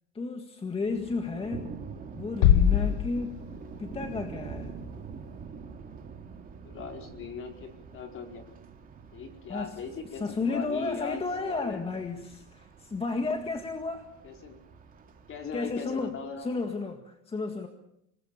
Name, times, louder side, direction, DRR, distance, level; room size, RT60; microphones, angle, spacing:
voice 1, 0.1-1.7 2.1-3.4 3.8-4.8 9.5-9.7 10.1-14.0 15.5-17.7, left 3 dB, 15° left, 5 dB, 1.8 m, -33 dB
Thunder, 0.8-16.7, right 6 dB, 25° right, 2.8 m, -45 dB
sound 1, 2.4-4.4, left 10 dB, 85° left, 1.5 m, -24 dB
voice 2, 6.6-8.4 9.1-11.8 14.2-14.6 15.3-16.5, left 6 dB, 40° left, 3 dB, 4.6 m, -39 dB
27.0 x 20.0 x 7.0 m, 0.78 s
cardioid pair, 150°, 34 cm